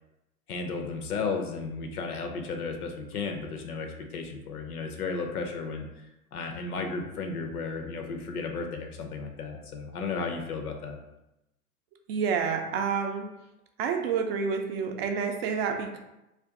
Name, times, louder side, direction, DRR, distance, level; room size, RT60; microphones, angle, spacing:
voice 1, 0.5-6.1 6.3-11.0, left 4 dB, 75° left, 4 dB, 0.7 m, -34 dB
voice 2, 12.1-13.3 13.8-16.0, right 6 dB, 45° right, 3 dB, 0.5 m, -28 dB
2.4 x 2.4 x 3.5 m, 0.93 s
figure-of-eight pair, 100°, 45 cm